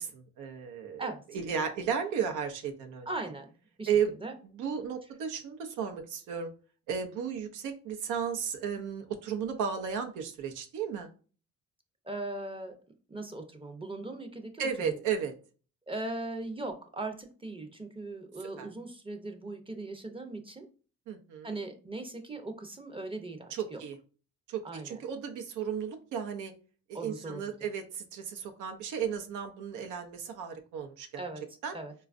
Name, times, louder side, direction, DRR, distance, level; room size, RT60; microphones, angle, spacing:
voice 1, 0.0-3.1 3.9-4.2 4.6-6.5 6.9-11.1 14.6-15.3 18.6-18.7 21.1-21.6 23.5-24.0 24.5-26.5 26.9-31.2 31.6-31.8, right 7 dB, 90° right, 5 dB, 0.6 m, -34 dB
voice 2, 3.1-3.9 4.2-4.4 12.0-12.8 13.1-15.0 15.9-20.7 21.4-23.8 24.6-25.0 26.9-27.4 31.2-31.4 31.7-31.9, right 2 dB, 20° right, 5 dB, 0.5 m, -39 dB
4.0 x 2.3 x 2.4 m, 0.37 s
cardioid pair, 90°, 30 cm